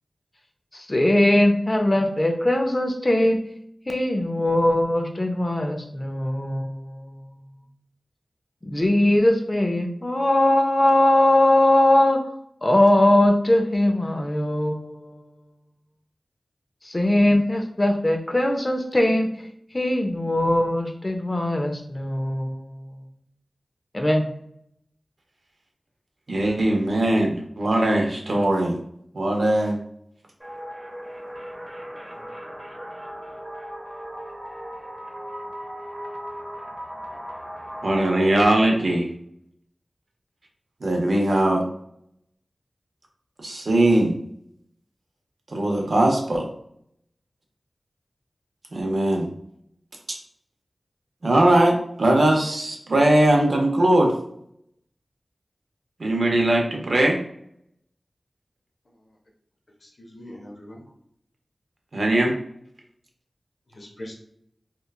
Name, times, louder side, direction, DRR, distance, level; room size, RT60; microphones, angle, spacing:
voice 1, 0.7-3.4 3.9-7.2 8.6-12.2 12.6-15.2 16.8-19.3 19.7-22.9 23.9-24.3, left 1 dB, 30° left, 4 dB, 0.5 m, -20 dB
voice 2, 26.3-28.7 29.1-29.8 37.8-39.1 40.8-41.6 43.4-44.2 45.5-46.5 48.7-49.3 51.2-54.1 56.0-57.2 61.9-62.3, right 1 dB, 70° right, 1 dB, 0.6 m, -20 dB
sound 1, 30.4-38.4, equal, 20° right, 0.7 m, -37 dB
voice 3, 59.8-60.8 63.7-64.1, left 1 dB, 65° left, -1 dB, 0.7 m, -41 dB
2.9 x 2.3 x 2.3 m, 0.71 s
wide cardioid pair, 60°, 0 cm